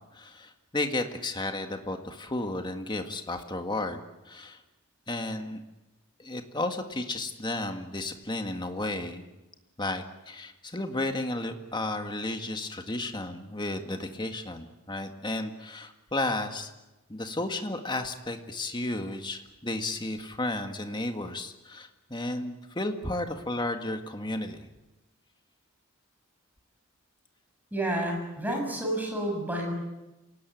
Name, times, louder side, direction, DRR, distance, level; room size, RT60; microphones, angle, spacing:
voice 1, 0.1-4.6 5.1-5.6 6.2-9.3 9.8-16.7 17.1-24.7, left 2 dB, 20° left, 6 dB, 1.9 m, -33 dB
voice 2, 27.7-29.7, right 1 dB, 10° right, 1 dB, 6.9 m, -30 dB
27.5 x 18.0 x 9.3 m, 1.0 s
head